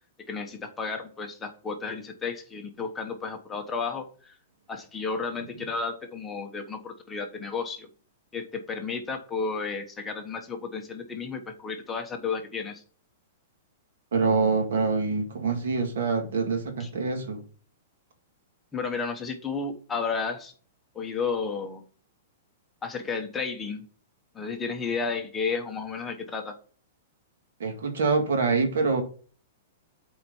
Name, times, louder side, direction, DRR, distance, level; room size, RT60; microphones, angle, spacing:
voice 1, 0.3-4.3 4.7-7.9 8.3-12.8 16.8-16.9 18.7-20.5 20.9-21.8 22.8-23.8 24.3-26.5, left 5 dB, 10° left, 1.1 m, -32 dB
voice 2, 14.1-17.4 27.6-29.0, right 4 dB, 80° right, 1.9 m, -25 dB
7.6 x 4.5 x 5.4 m
hypercardioid pair, 160°, 0 cm